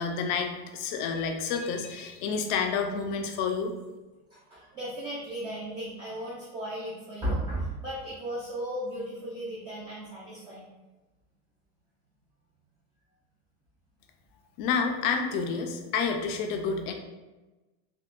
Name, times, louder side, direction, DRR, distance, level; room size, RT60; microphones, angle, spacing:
voice 1, 0.0-3.7 14.6-16.9, left 5 dB, 50° left, 4 dB, 0.4 m, -29 dB
voice 2, 4.3-10.7, right 1 dB, 15° right, -7 dB, 0.3 m, -35 dB
3.5 x 2.1 x 2.4 m, 1.1 s
supercardioid pair, 160°, 32 cm